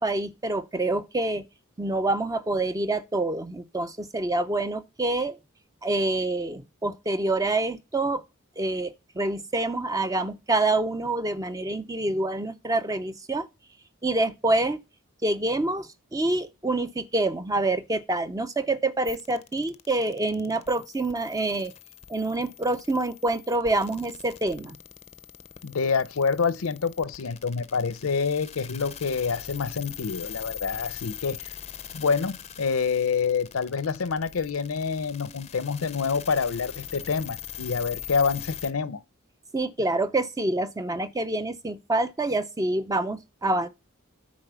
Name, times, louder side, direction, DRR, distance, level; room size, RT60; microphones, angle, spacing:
voice 1, 0.0-1.4 1.8-5.3 5.8-8.2 8.6-8.9 9.2-13.5 14.0-14.8 15.2-21.7 22.1-24.8 39.5-43.7, right 2 dB, 15° right, 0.5 m, -26 dB
sound 1, 19.1-38.7, left 10 dB, 30° left, 0.6 m, -42 dB
voice 2, 25.6-31.5 31.9-39.0, left 5 dB, 80° left, 0.7 m, -27 dB
9.6 x 4.0 x 6.8 m
head